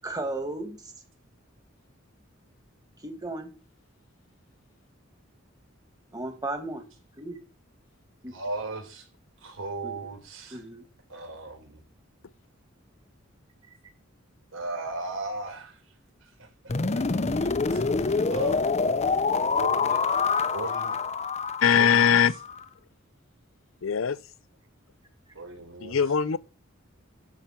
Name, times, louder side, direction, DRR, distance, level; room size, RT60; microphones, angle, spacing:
voice 1, 0.0-0.9 3.0-3.5 6.1-6.8 7.2-7.4 8.2-8.4 9.8-9.9 10.5-10.8, right 2 dB, 20° right, 2.2 m, -34 dB
voice 2, 8.3-9.1 9.4-10.6 11.1-11.8 14.5-15.8 16.2-18.6 19.5-20.0 20.5-21.1 21.7-22.2 25.3-26.0, right 2 dB, 80° right, 4.4 m, -37 dB
sound 1, 16.7-22.6, left 4 dB, 35° left, 0.7 m, -26 dB
voice 3, 21.6-22.3 23.8-24.2 25.8-26.4, left 8 dB, 75° left, 0.6 m, -21 dB
13.5 x 5.9 x 5.9 m
head